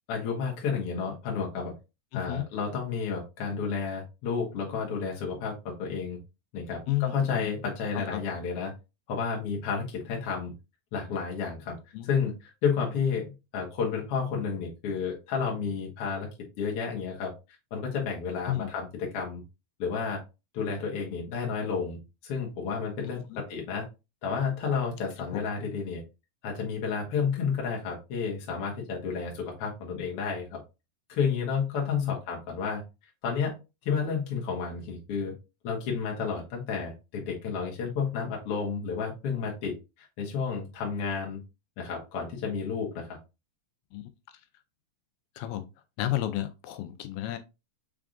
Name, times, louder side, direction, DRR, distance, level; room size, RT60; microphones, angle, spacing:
voice 1, 0.1-1.7 2.1-6.2 6.5-8.7 9.1-10.5 10.9-11.8 12.0-16.3 16.6-17.3 17.7-19.4 19.8-20.2 20.5-23.9 24.2-26.0 26.4-30.6 31.1-32.8 33.2-33.6 33.8-35.3 35.6-41.4 41.8-43.2 47.2-47.3, left 5 dB, 55° left, 1.8 m, -31 dB
voice 2, 2.1-2.5 6.9-7.5 7.9-8.2 11.9-12.1 18.5-18.7 23.3-23.4 25.3-25.4 31.9-32.2 43.9-44.0 45.4-45.7 46.0-47.4, left 15 dB, 85° left, 2.4 m, -32 dB
6.0 x 3.5 x 2.5 m
omnidirectional pair, 4.2 m